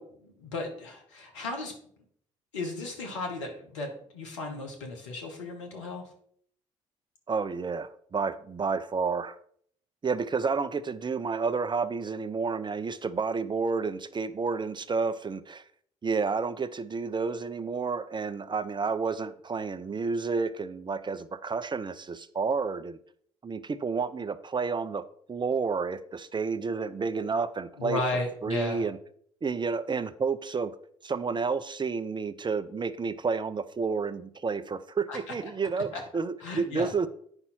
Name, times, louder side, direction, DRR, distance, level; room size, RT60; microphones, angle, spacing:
voice 1, 0.0-1.7 2.5-6.0 27.8-28.8 35.1-35.2 35.9-36.0 36.4-36.9, left 2 dB, 85° left, 1.4 m, -35 dB
voice 2, 7.3-9.4 10.0-15.6 16.0-23.0 23.4-28.0 28.4-29.0 29.4-30.7 31.0-37.1, right 5 dB, 30° right, 0.7 m, -30 dB
8.8 x 5.5 x 4.4 m
hypercardioid pair, 50°, 16 cm